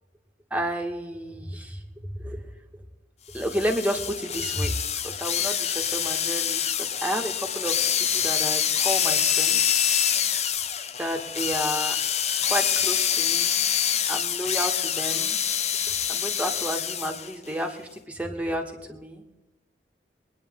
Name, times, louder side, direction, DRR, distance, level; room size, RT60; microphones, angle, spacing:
voice 1, 0.5-2.5 3.3-9.8 11.0-12.0 12.4-13.6 14.1-15.4 16.1-19.2, equal, 10° right, 3 dB, 2.0 m, -31 dB
sound 1, 3.4-17.3, left 8 dB, 40° left, 0.8 m, -26 dB
24.0 x 10.0 x 3.9 m, 1.0 s
head